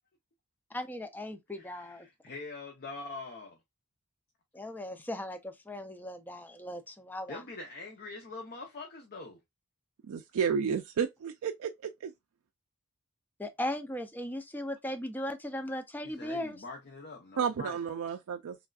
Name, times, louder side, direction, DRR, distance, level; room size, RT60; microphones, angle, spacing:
voice 1, 0.7-2.1 4.5-7.4 13.4-16.6, left 1 dB, 10° left, 0.4 m, -38 dB
voice 2, 1.6-3.6 7.3-9.4 16.0-17.8, left 3 dB, 45° left, 0.7 m, -44 dB
voice 3, 10.1-12.1 17.4-18.6, right 7 dB, 75° right, 0.4 m, -32 dB
3.3 x 2.4 x 2.3 m
head